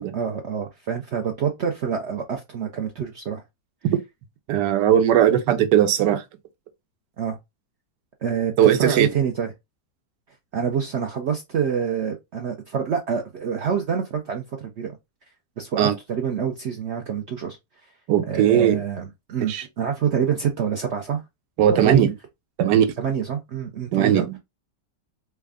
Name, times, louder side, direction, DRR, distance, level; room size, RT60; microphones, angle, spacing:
voice 1, 0.0-3.4 7.2-7.4 8.2-9.5 10.5-15.0 15.6-17.6 18.3-21.2 21.7-22.2 23.0-24.3, right 7 dB, 70° right, 0.6 m, -26 dB
voice 2, 4.5-6.2 8.6-9.1 15.8-15.9 18.1-18.8 19.5-19.6 21.6-22.1 22.6-22.9 23.9-24.4, right 10 dB, 90° right, 1.3 m, -18 dB
3.3 x 2.2 x 3.5 m
omnidirectional pair, 1.8 m